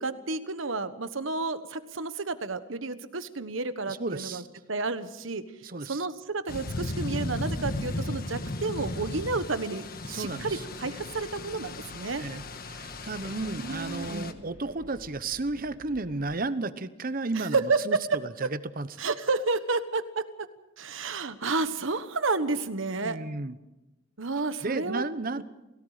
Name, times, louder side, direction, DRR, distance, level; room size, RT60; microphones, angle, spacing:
voice 1, 0.0-5.4 5.9-12.2 13.4-14.3 17.3-18.5 19.0-20.5 20.8-23.2 24.2-25.0 25.4-25.5, right 3 dB, 75° right, 11 dB, 1.3 m, -31 dB
voice 2, 3.9-4.4 5.6-6.0 10.0-10.6 12.2-18.9 23.0-23.6 24.6-25.4, right 3 dB, 45° right, 13 dB, 1.0 m, -33 dB
sound 1, 6.5-14.3, left 2 dB, 50° left, 1.4 m, -36 dB
sound 2, 10.1-16.3, equal, 85° left, 5.0 m, -52 dB
28.5 x 18.0 x 5.0 m, 0.98 s
head